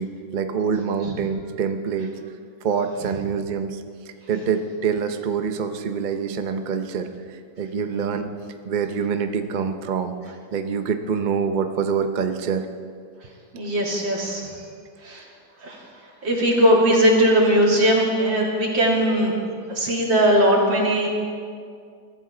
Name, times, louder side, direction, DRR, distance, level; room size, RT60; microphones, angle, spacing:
voice 1, 0.0-2.1 2.6-8.3 8.6-12.7 19.8-19.9, right 6 dB, 90° right, 7 dB, 0.4 m, -26 dB
voice 2, 13.5-14.4 15.0-15.2 15.6-15.8 16.2-19.3 19.7-21.1, equal, 70° right, -3 dB, 3.6 m, -19 dB
21.5 x 14.0 x 3.9 m, 2.2 s
omnidirectional pair, 2.1 m